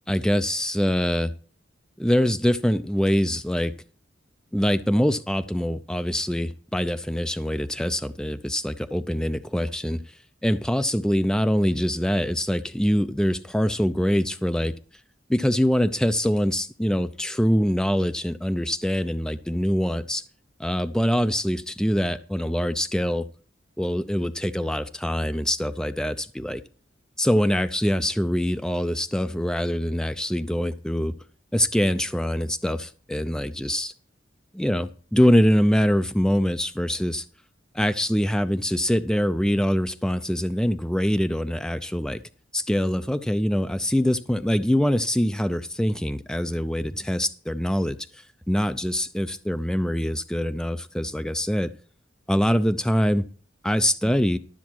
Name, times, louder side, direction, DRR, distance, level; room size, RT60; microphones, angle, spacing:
voice 1, 0.1-1.3 2.0-3.7 4.5-10.0 10.4-14.7 15.3-20.2 20.6-23.3 23.8-26.6 27.2-31.2 31.5-33.9 34.5-37.2 37.7-42.2 42.5-51.7 52.3-53.3 53.6-54.4, equal, 5° left, 10 dB, 0.4 m, -24 dB
12.5 x 7.1 x 4.5 m, 0.41 s
head